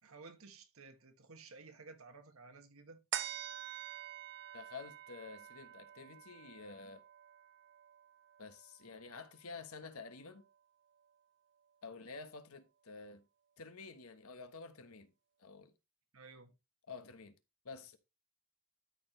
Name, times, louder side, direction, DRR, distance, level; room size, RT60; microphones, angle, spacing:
voice 1, 0.0-3.0 16.1-16.5, right 4 dB, 70° right, 1.4 m, -55 dB
sound 1, 3.1-9.9 10.3-10.4, right 10 dB, 55° right, 0.8 m, -47 dB
voice 2, 4.5-7.0 8.4-10.4 11.8-13.2 13.6-15.1 15.4-15.7 16.9-17.4 17.6-18.0, left 4 dB, 75° left, 1.1 m, -50 dB
13.0 x 4.6 x 3.2 m
head